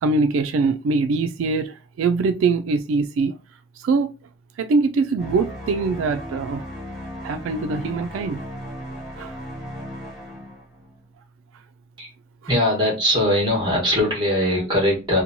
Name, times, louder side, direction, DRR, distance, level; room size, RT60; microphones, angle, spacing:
voice 1, 0.0-3.4 3.8-4.1 4.6-6.6 7.2-8.4 9.2-9.3, right 4 dB, 85° right, 0.3 m, -22 dB
sound 1, 5.2-11.0, equal, 5° right, 1.0 m, -36 dB
voice 2, 12.5-15.2, left 1 dB, 25° right, 1.2 m, -20 dB
2.9 x 2.2 x 2.6 m
head